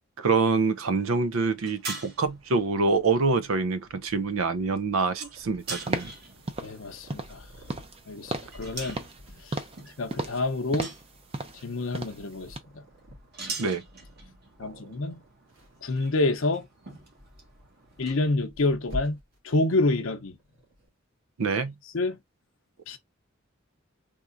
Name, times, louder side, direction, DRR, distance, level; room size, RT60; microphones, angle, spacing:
voice 1, 0.2-6.1 13.6-13.8 14.6-14.8 21.4-21.7, right 4 dB, 85° right, 0.5 m, -26 dB
sound 1, 1.5-18.3, right 3 dB, 50° right, 1.3 m, -45 dB
Purr, 2.2-20.9, left 1 dB, 70° right, 1.8 m, -49 dB
sound 2, 5.9-6.2 6.5-6.7 7.1-7.4 7.7-8.0 8.3-8.6 8.9-9.2 9.5-9.8 10.1-10.4 10.7-11.1 11.3-11.6 11.9-12.2 12.5-12.6, right 2 dB, 30° right, 0.5 m, -34 dB
voice 2, 6.6-7.4 8.1-9.0 9.4-9.6 10.0-10.9 11.6-12.8 14.6-15.2 15.8-16.7 18.0-19.2 19.4-20.4 21.9-22.2 22.9-23.0, left 2 dB, 75° left, 0.6 m, -28 dB
3.6 x 3.0 x 2.5 m
head